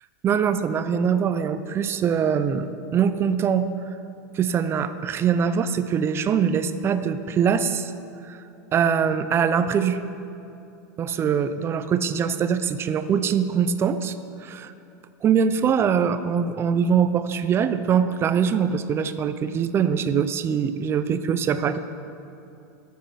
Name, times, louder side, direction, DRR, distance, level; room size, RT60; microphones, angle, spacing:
voice 1, 0.2-3.7 4.3-7.9 8.3-8.4 8.7-10.0 11.0-14.1 14.4-14.7 15.2-21.8, right 7 dB, 25° right, 11 dB, 0.5 m, -23 dB
13.0 x 7.5 x 5.7 m, 2.7 s
supercardioid pair, 135°, 10 cm